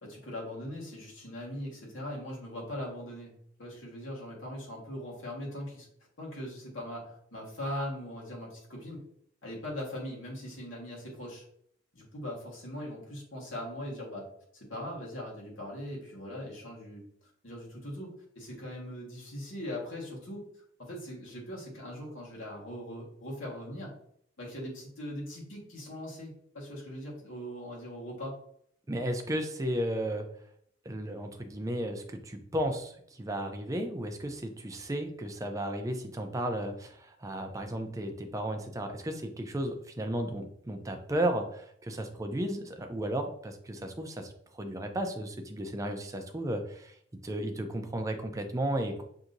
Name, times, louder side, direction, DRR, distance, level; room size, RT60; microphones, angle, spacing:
voice 1, 0.0-3.3 3.6-5.9 6.2-9.0 9.4-11.4 11.9-14.3 14.5-17.0 17.4-20.5 20.8-23.9 24.4-28.4, left 1 dB, 85° left, -3 dB, 1.5 m, -40 dB
voice 2, 28.9-30.3 30.9-46.9 47.2-49.0, right 1 dB, 15° right, 5 dB, 0.5 m, -34 dB
5.9 x 2.7 x 2.6 m, 0.66 s
head